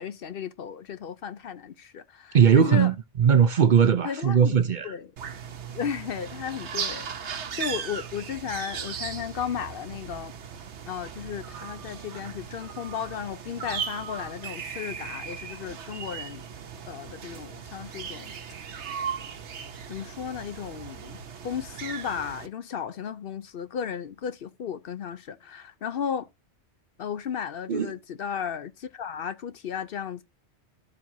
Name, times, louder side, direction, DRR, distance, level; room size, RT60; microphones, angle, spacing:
voice 1, 0.0-2.9 4.0-4.5 4.8-5.1 5.7-10.3 10.9-16.4 16.9-18.3 19.9-21.2 21.4-26.3 27.0-30.2, left 8 dB, 60° left, 0.8 m, -34 dB
voice 2, 2.3-2.9 3.2-4.9 27.7-27.9, right 7 dB, 50° right, 0.7 m, -19 dB
sound 1, 5.2-22.5, right 7 dB, 90° right, 1.1 m, -37 dB
12.0 x 7.5 x 2.7 m
omnidirectional pair, 1.1 m